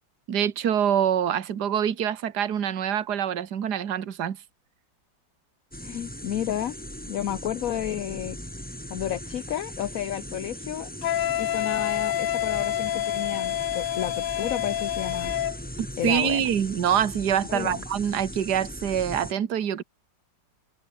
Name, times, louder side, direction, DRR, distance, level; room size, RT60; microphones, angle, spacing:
voice 1, 0.3-4.4 15.8-19.8, right 9 dB, 60° right, 2.0 m, -25 dB
sound 1, 5.7-19.3, equal, 5° left, 3.3 m, -39 dB
voice 2, 5.8-6.7 7.1-8.4 8.9-10.9 11.4-15.3 16.0-16.5 17.5-17.8, left 11 dB, 60° left, 1.1 m, -31 dB
Wind instrument woodwind instrument, 11.0-15.6, left 11 dB, 75° left, 1.6 m, -28 dB
omnidirectional pair, 2.0 m